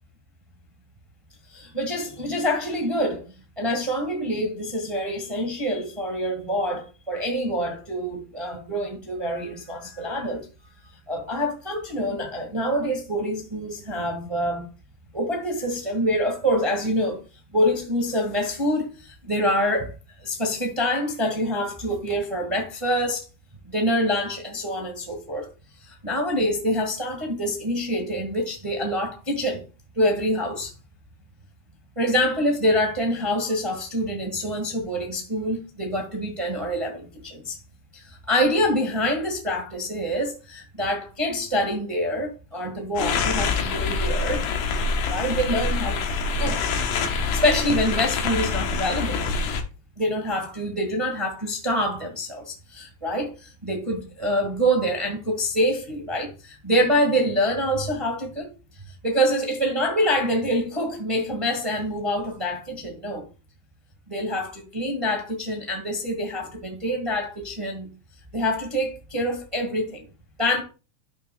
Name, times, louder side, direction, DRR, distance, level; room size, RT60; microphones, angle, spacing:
voice 1, 1.5-3.2 3.6-10.4 11.1-14.7 15.1-17.2 17.5-19.9 20.2-23.2 23.6-25.5 25.8-29.6 29.9-30.7 31.9-37.6 37.9-46.1 46.4-46.7 47.3-49.4 50.0-58.5 59.0-63.2 64.1-67.9 68.3-70.1 70.4-70.6, equal, 20° right, 0.7 m, -26 dB
sound 1, 43.0-49.6, left 4 dB, 85° left, 2.8 m, -25 dB
12.5 x 6.1 x 2.3 m
omnidirectional pair, 3.9 m